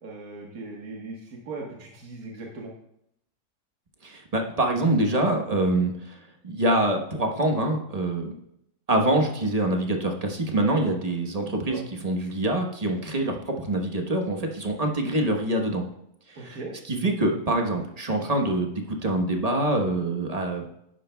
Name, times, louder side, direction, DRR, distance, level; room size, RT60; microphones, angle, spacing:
voice 1, 0.0-2.7 11.7-11.8 16.4-16.7, right 3 dB, 65° right, -1 dB, 1.8 m, -38 dB
voice 2, 4.0-8.3 8.9-15.8 16.3-16.6 16.9-20.6, right 1 dB, 25° right, 2 dB, 1.0 m, -25 dB
11.5 x 9.6 x 2.3 m, 0.77 s
omnidirectional pair, 1.7 m